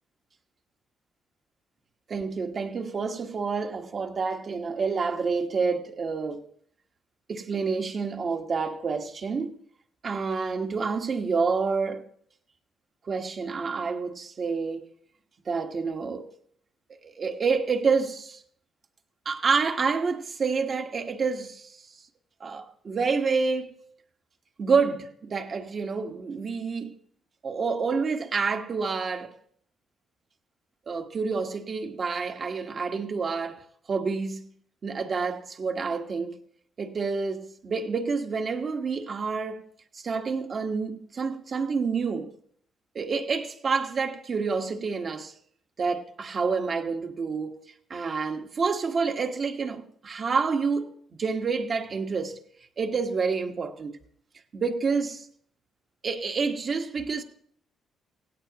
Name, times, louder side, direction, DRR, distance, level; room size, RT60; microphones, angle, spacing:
voice 1, 2.1-6.4 7.3-9.6 10.0-12.0 13.1-14.9 15.5-16.3 17.0-18.4 19.2-21.8 22.4-23.7 24.6-26.9 27.4-29.3 30.9-33.6 33.9-34.4 34.8-36.4 36.8-39.6 39.9-42.3 42.9-45.3 45.8-47.6 47.9-50.9 51.2-52.4 52.8-54.0 54.5-55.3 56.0-57.2, right 5 dB, 45° right, 1.4 m, -28 dB
17.0 x 16.5 x 3.0 m
cardioid pair, 90°, 0 cm